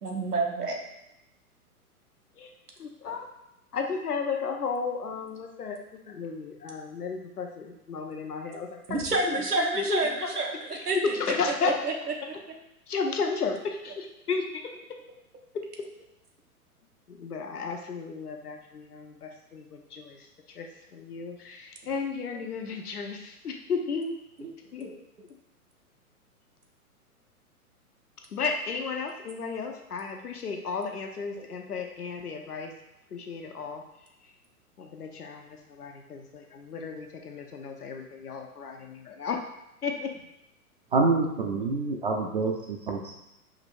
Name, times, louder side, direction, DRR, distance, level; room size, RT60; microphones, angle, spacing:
voice 1, 0.0-0.8 8.9-11.0 11.8-11.9 22.4-22.5 24.4-24.5 24.8-25.0, right 3 dB, 80° right, 2 dB, 0.9 m, -29 dB
voice 2, 2.8-3.3 3.7-10.4 10.7-11.9 12.9-15.0 15.5-15.6 17.1-24.2 24.7-24.9 28.3-32.7 33.1-33.8 34.8-39.4 39.8-40.1, left 5 dB, 75° left, 3 dB, 0.7 m, -33 dB
voice 3, 40.9-43.1, right 3 dB, 40° right, 0 dB, 0.4 m, -26 dB
5.0 x 3.0 x 2.6 m, 0.88 s
figure-of-eight pair, 115°, 45 cm